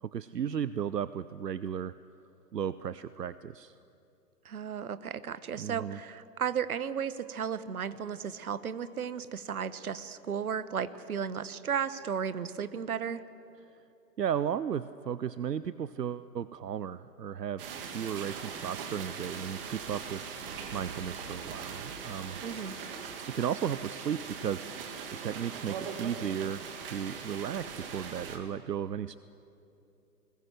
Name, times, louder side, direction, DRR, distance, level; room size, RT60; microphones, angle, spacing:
voice 1, 0.0-1.9 2.5-3.7 5.6-6.0 14.2-17.6 17.9-20.3 20.7-22.4 23.3-25.0 25.2-29.2, right 8 dB, 80° right, 15 dB, 0.7 m, -35 dB
voice 2, 4.4-13.2 22.4-22.8, right 7 dB, 60° right, 15 dB, 1.1 m, -34 dB
sound 1, 17.6-28.4, right 6 dB, 35° right, 2.2 m, -41 dB
21.0 x 20.0 x 7.7 m, 2.7 s
figure-of-eight pair, 130°, 48 cm